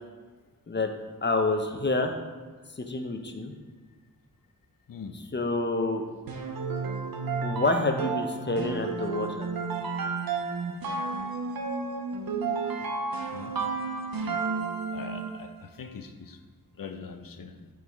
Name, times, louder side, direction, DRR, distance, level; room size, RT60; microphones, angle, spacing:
voice 1, 1.2-2.2 2.8-3.5 5.3-6.0 7.4-9.5, left 2 dB, 30° left, 5 dB, 0.7 m, -28 dB
sound 1, 6.3-15.5, right 4 dB, 75° right, 0.8 m, -32 dB
voice 2, 14.9-16.4 16.8-17.6, left 5 dB, 70° left, 7 dB, 0.6 m, -42 dB
8.4 x 4.7 x 3.5 m, 1.4 s
wide cardioid pair, 95°, 35 cm